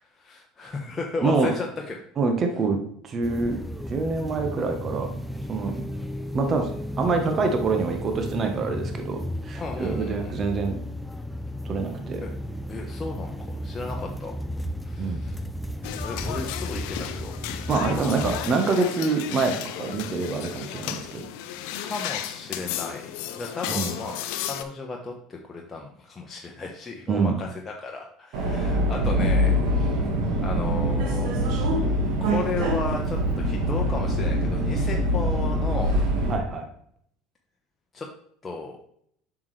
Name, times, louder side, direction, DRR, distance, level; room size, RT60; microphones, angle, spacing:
voice 1, 0.2-2.0 9.5-10.3 12.2-12.3 12.7-14.3 14.8-15.4 16.0-17.4 17.9-18.3 21.8-31.3 32.2-36.0 37.9-38.1 38.4-38.8, left 3 dB, 25° left, 0 dB, 1.0 m, -34 dB
voice 2, 1.2-1.5 2.2-2.8 3.0-3.6 3.9-5.1 5.5-5.7 6.3-6.7 7.0-9.2 9.4-10.8 11.6-12.2 15.0-15.2 17.7-19.5 19.8-21.2 23.7-24.0 27.1-27.4 36.3-36.7, right 4 dB, 40° right, 4 dB, 1.2 m, -25 dB
sound 1, 3.2-18.6, equal, ahead, 0.6 m, -34 dB
sound 2, 15.8-24.6, left 10 dB, 70° left, 0.6 m, -34 dB
Subway metro underground, 28.3-36.3, equal, 65° right, 1.9 m, -24 dB
7.1 x 6.1 x 3.3 m, 0.67 s
hypercardioid pair, 75°, 0 cm